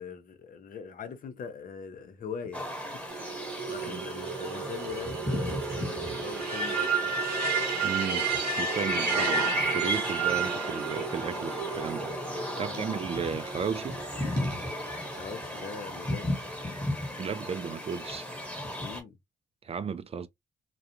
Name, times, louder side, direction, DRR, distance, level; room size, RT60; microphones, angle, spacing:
voice 1, 0.0-2.6 3.2-7.1 9.0-9.2 12.5-13.0 15.1-16.3 17.6-17.7 18.8-19.2, left 6 dB, 60° left, 0.7 m, -42 dB
sound 1, 2.5-19.0, left 1 dB, 5° left, 1.1 m, -35 dB
sound 2, 3.1-15.7, right 5 dB, 85° right, 0.8 m, -32 dB
voice 2, 7.8-8.3 8.6-9.5 9.7-13.9 17.2-18.3 19.6-20.3, right 6 dB, 40° right, 0.4 m, -34 dB
2.4 x 2.2 x 2.8 m
supercardioid pair, 60°, 16 cm